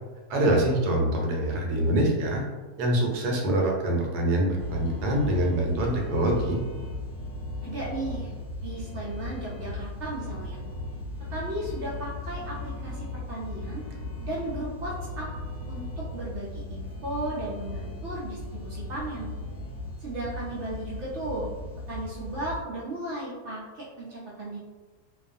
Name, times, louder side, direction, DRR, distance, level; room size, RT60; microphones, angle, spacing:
voice 1, 0.3-2.4 2.8-6.6, right 1 dB, 80° right, 0 dB, 1.1 m, -25 dB
sound 1, 4.6-22.6, left 2 dB, 65° left, 0.8 m, -37 dB
voice 2, 7.6-8.3 8.6-10.6 11.3-13.8 14.2-15.3 15.7-19.3 20.0-21.5 21.9-24.6, right 1 dB, 65° right, -6 dB, 0.7 m, -35 dB
2.4 x 2.3 x 2.5 m, 1.3 s
omnidirectional pair, 1.7 m